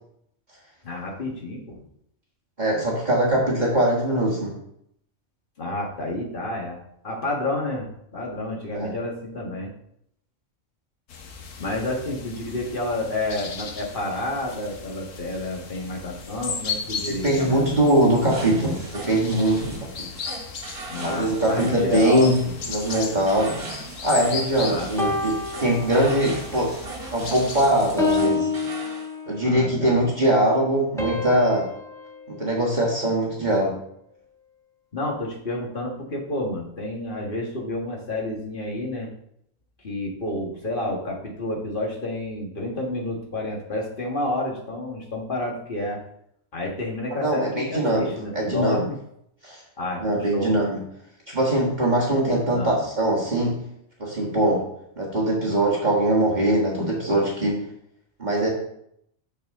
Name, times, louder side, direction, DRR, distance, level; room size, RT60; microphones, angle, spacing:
voice 1, 0.8-1.8 5.6-6.8 7.0-9.7 11.6-18.0 20.9-22.6 24.7-25.2 29.4-30.0 34.9-39.1 39.8-46.0 46.5-48.9 49.8-50.6 52.5-52.8 54.0-54.2 57.0-57.1, left 1 dB, 45° left, -2 dB, 1.8 m, -30 dB
voice 2, 2.6-4.5 8.7-8.9 17.2-20.0 21.0-22.4 22.7-23.6 24.0-26.7 27.1-28.5 29.3-31.7 32.3-33.8 47.1-48.8 49.4-49.6 50.0-50.8 51.3-53.6 54.0-54.6 55.0-57.6 58.2-58.5, right 1 dB, 35° right, -4 dB, 1.7 m, -22 dB
sound 1, 11.1-28.2, left 5 dB, 80° left, 1.3 m, -37 dB
sound 2, 18.3-29.1, right 3 dB, 50° right, 1.6 m, -38 dB
sound 3, 25.0-26.5 27.0-27.3 28.0-29.6 31.0-33.4, left 4 dB, 5° left, 1.0 m, -29 dB
6.6 x 6.5 x 3.7 m, 0.73 s
omnidirectional pair, 1.3 m